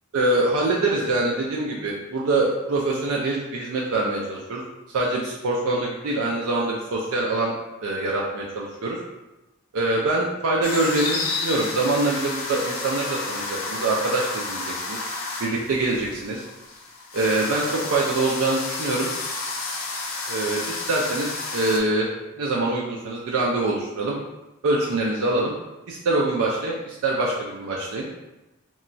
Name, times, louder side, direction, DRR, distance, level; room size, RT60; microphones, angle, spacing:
voice 1, 0.1-4.6 4.9-7.5 7.8-9.0 9.7-15.0 15.4-16.4 17.1-19.1 20.3-22.1 22.4-24.2 24.6-25.5 25.9-28.1, right 2 dB, 80° right, -2 dB, 0.4 m, -24 dB
sound 1, 10.6-21.8, left 3 dB, 70° left, 0.4 m, -31 dB
2.9 x 2.2 x 2.5 m, 1.0 s
head